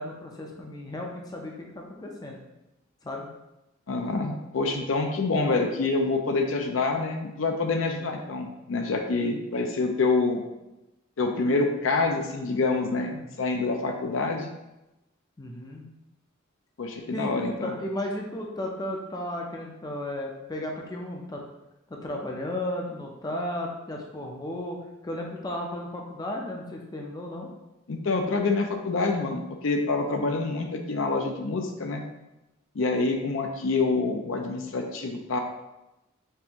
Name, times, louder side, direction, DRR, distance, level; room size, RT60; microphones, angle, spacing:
voice 1, 0.0-2.4 3.0-3.3 7.9-8.1 13.1-13.4 15.4-15.8 17.1-21.4 21.9-27.5, left 1 dB, 20° left, 0 dB, 0.5 m, -34 dB
voice 2, 3.9-10.4 11.2-13.1 13.4-14.5 16.8-17.8 27.9-32.0 32.7-35.4, left 3 dB, 70° left, 4 dB, 0.5 m, -26 dB
5.4 x 2.5 x 2.9 m, 0.96 s
head